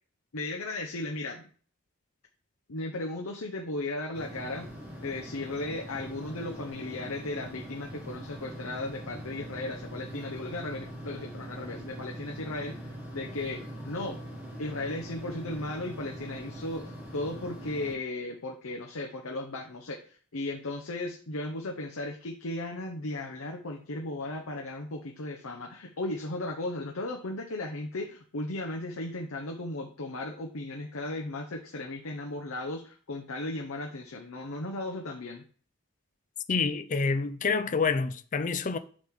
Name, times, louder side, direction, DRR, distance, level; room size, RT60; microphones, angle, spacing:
voice 1, 0.3-1.5 2.7-4.7 5.0-14.2 14.6-35.4, left 2 dB, 90° left, 0.9 m, -36 dB
sound 1, 4.1-17.9, equal, 10° right, 1.6 m, -42 dB
voice 2, 36.5-38.8, left 4 dB, 35° left, 0.5 m, -27 dB
5.9 x 5.0 x 3.7 m
head